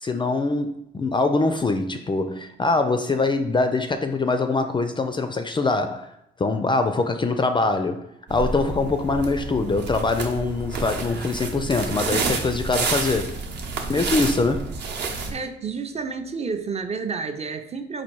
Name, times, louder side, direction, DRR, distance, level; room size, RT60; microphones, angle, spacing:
voice 1, 0.0-6.1 6.4-8.0 8.3-13.4 13.9-14.7, left 3 dB, 25° left, 0.4 m, -23 dB
sound 1, 8.3-15.3, right 4 dB, 60° right, 0.8 m, -29 dB
voice 2, 15.3-18.0, right 5 dB, 30° right, 0.5 m, -30 dB
4.1 x 2.5 x 4.5 m
cardioid pair, 90°, 20 cm